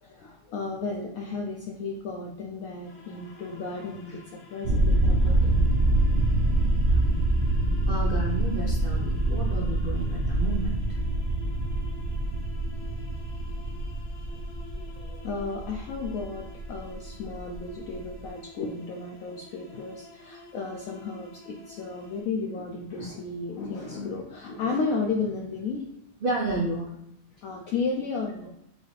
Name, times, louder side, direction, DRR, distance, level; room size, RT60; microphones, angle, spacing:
voice 1, 0.0-5.8 6.9-7.0 14.9-25.9 27.3-28.5, left 4 dB, 70° left, 0 dB, 0.9 m, -33 dB
sound 1, 2.8-22.2, left 3 dB, 85° left, 1.6 m, -50 dB
sound 2, 4.6-18.3, right 1 dB, 60° right, 0.8 m, -25 dB
voice 2, 7.9-10.9 26.2-26.9, right 2 dB, 85° right, -2 dB, 0.4 m, -31 dB
4.9 x 2.6 x 3.2 m, 0.79 s
omnidirectional pair, 1.7 m